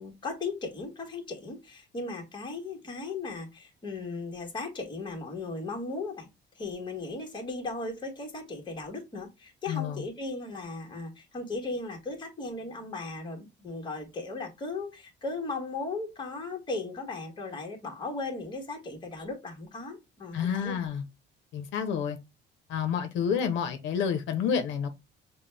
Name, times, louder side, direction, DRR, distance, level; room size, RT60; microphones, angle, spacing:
voice 1, 0.0-20.8, left 3 dB, 25° left, 1.4 m, -37 dB
voice 2, 9.7-10.0 20.3-21.0 21.5-22.2 22.7-24.9, left 7 dB, 75° left, 0.8 m, -29 dB
5.9 x 2.3 x 3.3 m
cardioid pair, 155°, 19 cm